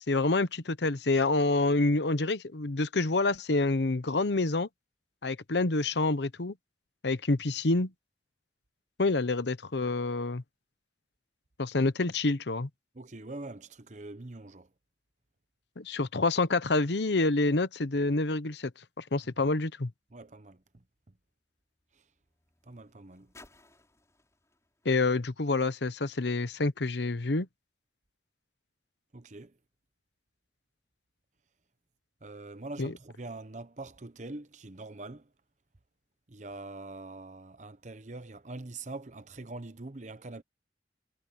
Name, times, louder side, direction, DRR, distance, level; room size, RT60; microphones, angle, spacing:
voice 1, 0.1-4.7 5.2-6.5 7.0-7.9 9.0-10.4 11.6-12.7 15.8-18.7 19.0-19.9 24.8-27.5 32.8-32.9, left 3 dB, 75° left, 0.9 m, -27 dB
voice 2, 12.9-14.7 19.4-19.5 20.1-21.1 22.7-23.3 29.1-29.5 32.2-35.3 36.3-40.4, right 2 dB, 40° right, 0.9 m, -44 dB
sound 1, 19.9-26.3 27.1-27.2, left 2 dB, 15° left, 6.0 m, -62 dB
head